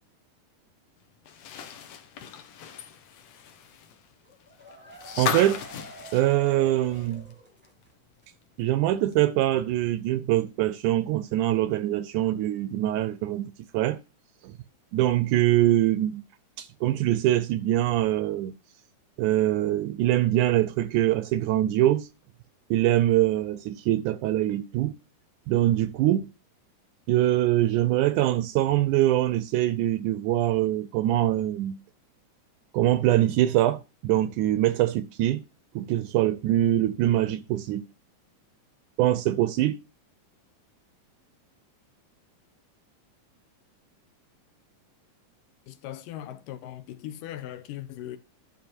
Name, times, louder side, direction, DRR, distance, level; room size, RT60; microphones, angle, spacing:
sound 1, 1.3-7.3 7.6-7.7 9.1-9.2, left 8 dB, 65° left, 2.0 m, -36 dB
sound 2, 4.2-7.9 8.2-8.3 8.6-8.7, left 2 dB, 5° right, 1.1 m, -46 dB
voice 1, 5.2-5.6 6.1-7.2 8.6-14.0 14.4-14.5 14.9-16.2 16.6-18.5 19.2-22.1 22.7-24.9 25.5-26.3 27.1-31.8 32.7-35.4 35.8-37.9 39.0-39.8, right 14 dB, 80° right, 1.9 m, -23 dB
voice 2, 45.7-48.2, left 12 dB, 80° left, 2.5 m, -39 dB
12.0 x 5.4 x 4.4 m
omnidirectional pair, 3.9 m